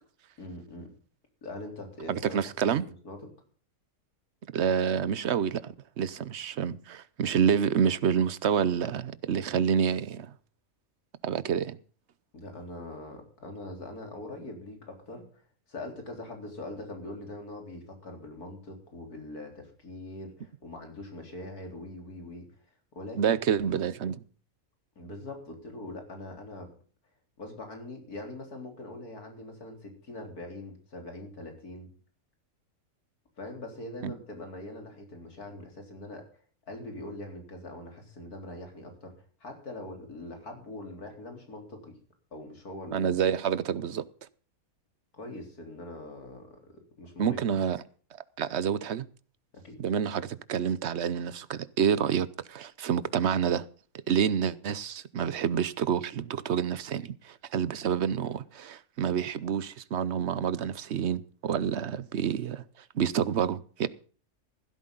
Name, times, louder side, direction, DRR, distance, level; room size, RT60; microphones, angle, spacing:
voice 1, 0.4-0.9 1.4-2.4 2.6-3.3 9.4-9.6 12.3-15.4 15.7-22.5 23.0-23.4 25.0-26.7 27.4-31.9 33.4-36.3 36.7-39.1 39.4-41.9 42.3-43.1 45.1-47.4 49.6-49.8, left 2 dB, 85° left, 4.3 m, -42 dB
voice 2, 2.1-2.9 4.5-10.3 11.2-11.8 23.2-24.2 34.0-34.1 42.9-44.0 47.2-47.8 48.4-49.0 49.8-53.6 54.1-62.6 62.9-63.9, right 8 dB, 55° right, 0.9 m, -28 dB
15.5 x 12.5 x 3.9 m
omnidirectional pair, 1.6 m